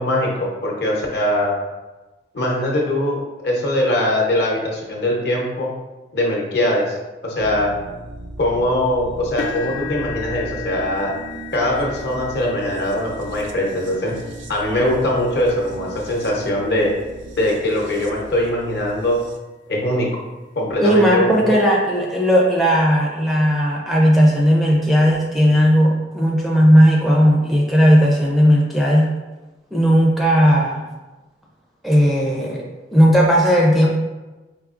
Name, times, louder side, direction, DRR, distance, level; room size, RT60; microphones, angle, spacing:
voice 1, 0.0-1.6 2.3-5.7 6.1-7.0 7.2-7.7 8.4-11.1 11.5-14.2 14.5-16.9 17.4-19.2 19.7-20.1 20.6-21.5, left 1 dB, 60° left, -2 dB, 0.8 m, -21 dB
sound 1, 7.4-19.4, right 2 dB, 85° right, 0.4 m, -38 dB
sound 2, 9.4-17.4 18.0-18.3 18.7-18.8 20.2-20.3, left 5 dB, 80° left, 0.3 m, -36 dB
voice 2, 20.8-29.1 29.7-30.8 31.8-32.6 32.9-33.9, equal, ahead, -3 dB, 0.4 m, -15 dB
4.7 x 2.7 x 2.4 m, 1.1 s
head